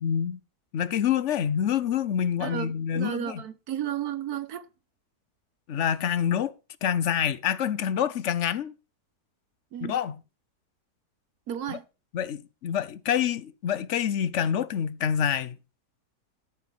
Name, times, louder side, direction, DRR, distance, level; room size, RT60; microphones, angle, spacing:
voice 1, 0.0-0.4 0.7-3.4 5.7-6.5 6.8-8.7 9.8-10.2 11.7-11.8 12.1-15.6, left 9 dB, 55° left, 0.9 m, -27 dB
voice 2, 2.4-4.7 9.7-10.0 11.5-11.8, right 10 dB, 70° right, 1.5 m, -33 dB
13.0 x 4.7 x 7.0 m
omnidirectional pair, 1.7 m